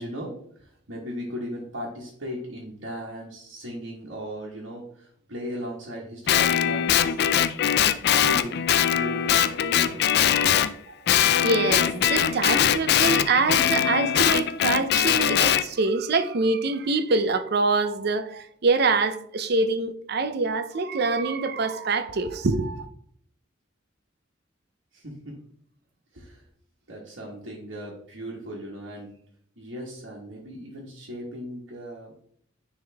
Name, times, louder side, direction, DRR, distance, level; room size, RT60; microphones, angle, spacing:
voice 1, 0.0-7.2 7.8-10.7 24.9-25.4 26.1-26.4 26.9-29.1 29.6-32.1, equal, 75° right, 1.5 m, -37 dB
Guitar, 6.3-10.7 11.1-15.6, left 9 dB, 55° left, 0.4 m, -22 dB
voice 2, 11.4-22.9, right 3 dB, 55° right, 0.5 m, -25 dB
9.8 x 3.6 x 3.4 m
head